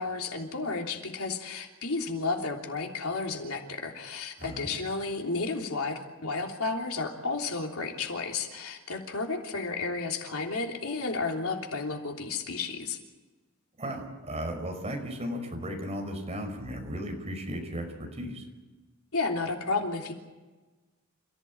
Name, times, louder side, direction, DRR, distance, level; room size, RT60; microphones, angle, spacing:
voice 1, 0.0-13.0 19.1-20.1, left 3 dB, 85° left, 2 dB, 3.3 m, -32 dB
voice 2, 4.4-4.7 13.8-18.5, equal, 30° right, 3 dB, 5.4 m, -35 dB
29.0 x 15.5 x 8.8 m, 1.2 s
head